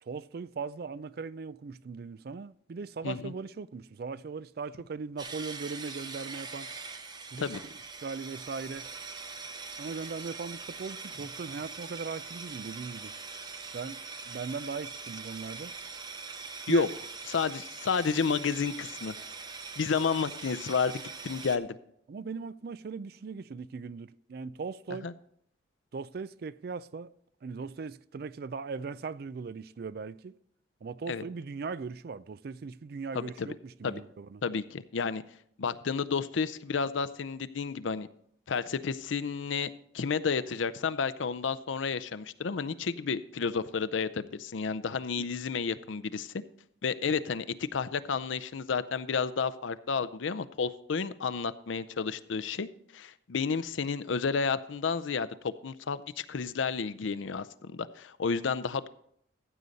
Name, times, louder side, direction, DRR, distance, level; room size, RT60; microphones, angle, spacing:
voice 1, 0.0-6.7 7.3-7.4 8.0-8.9 9.8-13.1 13.5-15.7 16.3-16.9 22.1-25.1 25.9-27.1 27.4-30.3 30.8-34.4 45.2-45.4, right 4 dB, 55° right, 0.4 m, -39 dB
sound 1, 5.2-21.6, right 4 dB, 20° right, 0.7 m, -42 dB
voice 2, 17.3-19.1 19.8-21.8 25.0-25.1 31.1-31.2 33.1-33.5 33.8-34.0 34.4-35.2 35.6-38.1 38.5-39.7 39.9-46.3 46.8-55.3 55.6-58.9, left 5 dB, 90° left, 0.5 m, -31 dB
15.0 x 7.8 x 4.1 m
head